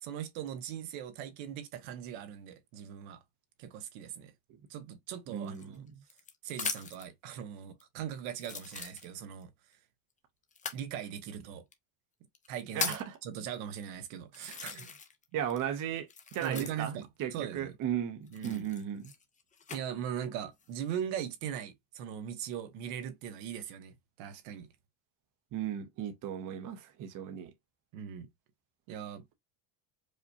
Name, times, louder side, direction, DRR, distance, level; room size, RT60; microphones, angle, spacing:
voice 1, 0.0-3.2 3.6-4.3 4.7-5.8 6.4-9.5 10.7-11.6 12.5-12.9 13.2-14.8 16.4-17.8 18.3-18.7 19.7-24.7 27.9-28.3 28.9-29.3, right 9 dB, 75° right, 1.0 m, -40 dB
voice 2, 5.3-5.9 12.7-13.2 14.5-14.9 15.3-19.1 25.5-27.5, right 9 dB, 40° right, 0.8 m, -36 dB
sound 1, 5.4-7.1 7.8-7.9 8.4-9.4 10.5-10.8 11.7-11.8 12.3-13.1 13.8-13.9 14.3-15.2 15.5-17.0 18.3-19.8 20.5-20.9, left 6 dB, 15° left, 0.5 m, -40 dB
4.9 x 2.1 x 2.8 m
cardioid pair, 130°, 50 cm